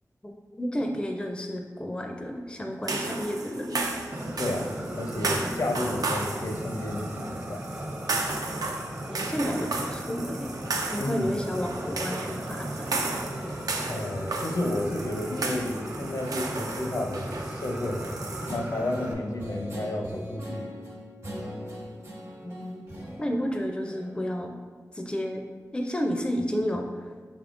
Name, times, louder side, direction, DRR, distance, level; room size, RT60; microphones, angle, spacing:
voice 1, 0.2-3.8 9.1-10.5 10.9-12.9 22.4-24.5 24.9-25.4 25.7-27.1, equal, 15° left, 3 dB, 0.4 m, -31 dB
sound 1, 2.8-18.6, right 3 dB, 80° right, 0.4 m, -34 dB
Fire, 4.1-19.1, right 1 dB, 25° right, 0.6 m, -37 dB
voice 2, 4.4-7.7 11.0-11.3 13.9-18.1 18.5-20.6, left 1 dB, 65° left, 1 dB, 0.6 m, -31 dB
Guitar, 18.5-24.3, equal, 50° right, 1.1 m, -40 dB
5.4 x 3.5 x 2.5 m, 1.5 s
wide cardioid pair, 75°, 6 cm